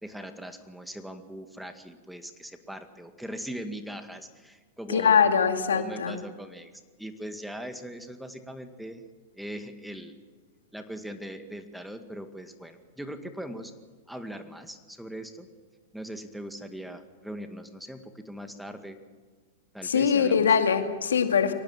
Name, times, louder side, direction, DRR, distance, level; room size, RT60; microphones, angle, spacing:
voice 1, 0.0-5.3 5.7-6.7 7.0-9.0 9.3-10.1 10.7-13.7 14.1-15.5 15.9-19.0 19.7-20.5, equal, ahead, 7 dB, 2.0 m, -40 dB
voice 2, 4.9-6.2 19.8-21.5, left 6 dB, 80° left, 6 dB, 2.2 m, -22 dB
24.0 x 18.5 x 7.5 m, 1.4 s
hypercardioid pair, 110°, 0 cm